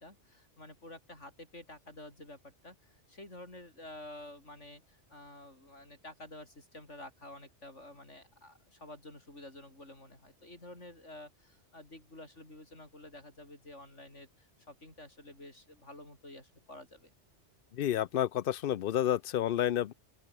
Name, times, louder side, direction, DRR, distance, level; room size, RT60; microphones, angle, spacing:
voice 1, 0.0-17.1, left 1 dB, 85° left, 8.0 m, -50 dB
voice 2, 17.8-19.9, left 11 dB, 60° left, 0.7 m, -30 dB
open air
omnidirectional pair, 1.2 m